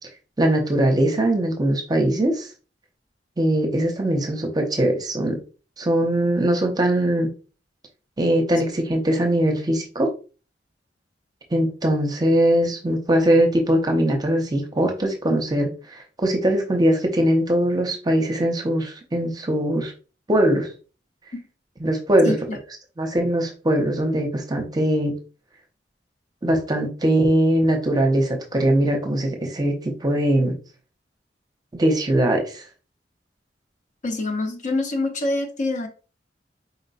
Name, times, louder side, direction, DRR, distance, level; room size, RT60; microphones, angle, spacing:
voice 1, 0.4-2.5 3.4-5.4 5.8-7.3 8.2-10.1 11.5-19.9 20.3-20.7 21.8-22.3 23.0-25.1 26.4-30.5 31.7-32.6, right 1 dB, 25° right, 0.7 m, -21 dB
voice 2, 22.2-22.6 34.0-35.9, left 2 dB, 45° left, 0.6 m, -25 dB
4.2 x 2.2 x 4.0 m
head